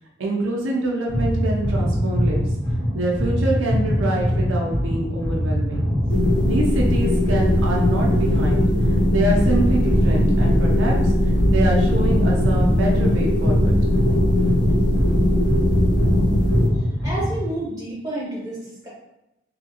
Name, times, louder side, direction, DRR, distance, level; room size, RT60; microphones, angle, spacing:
voice 1, 0.2-2.4 2.9-5.8 6.4-11.1 11.5-13.7, right 2 dB, 85° right, -2 dB, 0.5 m, -25 dB
sound 1, 1.1-17.5, equal, 20° left, 0.8 m, -23 dB
sound 2, 6.1-16.7, left 1 dB, 65° left, 0.5 m, -20 dB
voice 2, 16.7-18.9, right 1 dB, 20° right, -8 dB, 1.2 m, -30 dB
2.7 x 2.5 x 2.7 m, 0.90 s
head